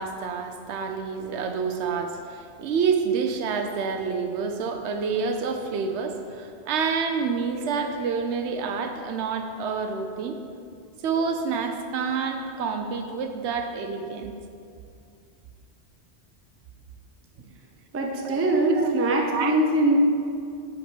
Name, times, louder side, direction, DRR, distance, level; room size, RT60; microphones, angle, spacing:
voice 1, 0.0-10.4 11.0-14.3 17.4-17.5 18.2-18.4 18.7-18.9 19.3-19.5, right 5 dB, 80° right, 6 dB, 0.9 m, -28 dB
voice 2, 17.9-20.0, right 2 dB, 20° right, 1 dB, 0.3 m, -22 dB
5.6 x 4.2 x 5.2 m, 2.4 s
omnidirectional pair, 1.1 m